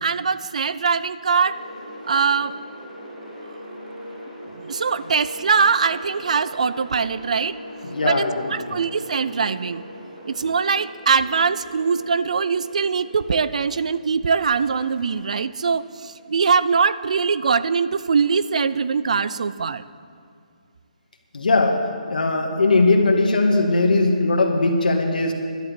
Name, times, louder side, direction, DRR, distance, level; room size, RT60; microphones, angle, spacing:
voice 1, 0.0-1.6 2.1-2.5 4.6-7.6 8.0-8.2 8.5-9.8 10.3-19.8, right 5 dB, 55° right, 15 dB, 0.5 m, -22 dB
sound 1, 1.4-13.8 14.4-16.5, equal, 10° right, 2.9 m, -40 dB
voice 2, 7.8-8.8 21.3-25.3, left 2 dB, 80° left, 3 dB, 2.0 m, -19 dB
11.5 x 11.0 x 6.8 m, 2.3 s
hypercardioid pair, 170°, 5 cm